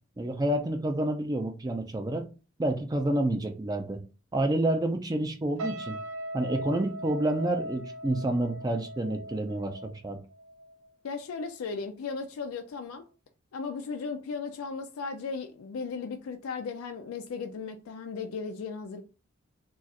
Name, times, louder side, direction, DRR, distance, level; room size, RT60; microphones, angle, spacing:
voice 1, 0.2-2.3 2.6-4.0 4.3-6.0 6.3-10.2, right 1 dB, 20° right, 0.4 m, -29 dB
sound 1, 5.6-10.9 11.2-11.5, equal, 80° right, 0.5 m, -39 dB
voice 2, 11.0-13.0 13.5-19.0, left 5 dB, 80° left, 0.4 m, -36 dB
2.4 x 2.3 x 4.0 m
head